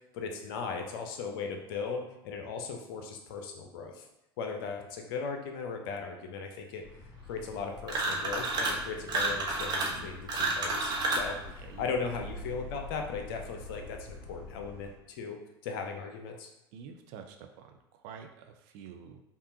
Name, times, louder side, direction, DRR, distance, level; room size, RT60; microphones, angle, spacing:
voice 1, 0.1-4.1 4.4-6.8 7.2-15.4 15.6-16.5, left 5 dB, 60° left, 4 dB, 0.7 m, -37 dB
sound 1, 6.8-14.9, left 3 dB, 15° right, 1.2 m, -47 dB
sound 2, 7.9-8.8 9.1-11.3, right 2 dB, 30° right, 0.9 m, -30 dB
voice 2, 11.6-11.9 16.7-19.2, right 7 dB, 50° right, 5 dB, 0.5 m, -48 dB
5.2 x 2.4 x 2.7 m, 0.92 s
figure-of-eight pair, 75°, 13 cm